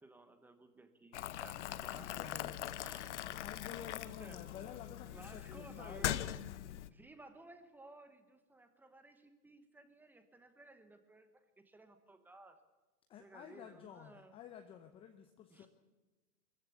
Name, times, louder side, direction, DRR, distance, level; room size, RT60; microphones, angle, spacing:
voice 1, 0.0-2.5 2.8-3.2 4.2-4.4 5.1-6.2 6.9-12.6 13.2-14.4 15.5-15.7, right 2 dB, 5° right, 9 dB, 1.1 m, -57 dB
Boiling, 1.1-6.9, left 12 dB, 45° left, 0.9 m, -41 dB
voice 2, 1.4-6.1 13.1-15.7, left 9 dB, 10° left, 6 dB, 0.8 m, -52 dB
23.0 x 14.5 x 8.4 m, 1.2 s
hypercardioid pair, 140°, 49 cm